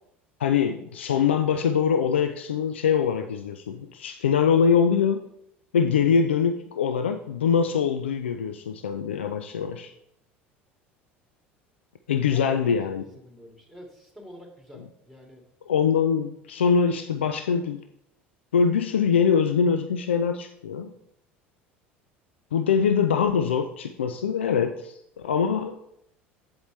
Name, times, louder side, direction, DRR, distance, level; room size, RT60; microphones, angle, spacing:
voice 1, 0.4-5.2 5.7-9.9 12.1-13.0 15.7-17.8 18.5-20.9 22.5-25.8, left 6 dB, 75° left, 7 dB, 0.4 m, -23 dB
voice 2, 12.3-15.4, equal, 5° left, 1 dB, 2.4 m, -47 dB
8.2 x 7.9 x 3.3 m, 0.79 s
figure-of-eight pair, 70°, 6 cm